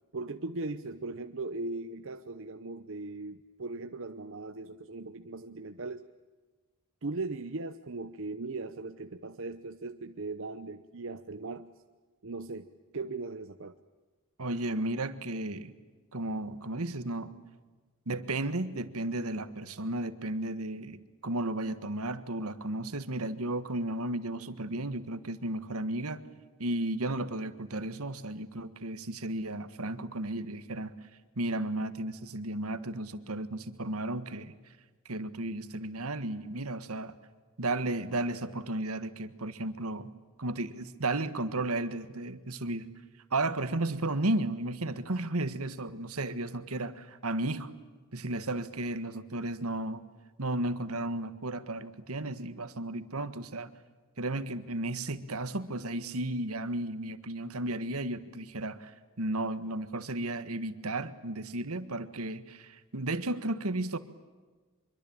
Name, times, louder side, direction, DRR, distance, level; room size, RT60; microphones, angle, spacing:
voice 1, 0.1-6.0 7.0-11.7 12.2-12.7 12.9-13.8, right 3 dB, 60° right, 8 dB, 0.9 m, -38 dB
voice 2, 14.4-15.7 16.1-17.3 18.1-26.2 26.6-30.9 31.4-34.5 35.0-37.1 37.6-40.1 40.4-42.8 43.3-47.7 48.1-50.0 50.4-53.7 54.2-64.0, right 2 dB, 80° right, 11 dB, 1.6 m, -34 dB
25.0 x 23.5 x 8.8 m, 1.3 s
head